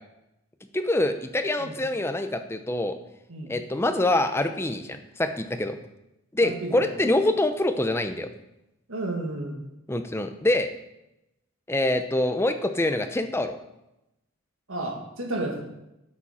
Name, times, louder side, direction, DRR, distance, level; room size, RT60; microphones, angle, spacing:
voice 1, 0.7-3.0 3.5-5.8 6.3-8.3 9.9-10.7 11.7-13.6, left 1 dB, 10° left, 8 dB, 0.6 m, -25 dB
voice 2, 6.4-6.9 8.9-9.6 14.7-15.6, right 2 dB, 80° right, 2 dB, 1.8 m, -32 dB
8.8 x 7.2 x 4.3 m, 0.89 s
head